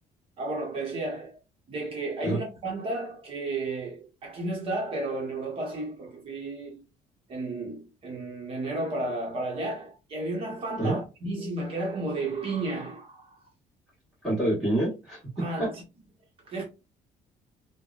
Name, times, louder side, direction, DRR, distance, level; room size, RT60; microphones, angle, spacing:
voice 1, 0.4-1.4 1.7-6.9 7.3-13.4 15.4-15.8 16.4-16.6, right 2 dB, 40° right, 1.0 m, -33 dB
voice 2, 14.2-15.7, right 1 dB, ahead, 1.4 m, -27 dB
3.5 x 2.2 x 2.4 m
cardioid pair, 170°, 14 cm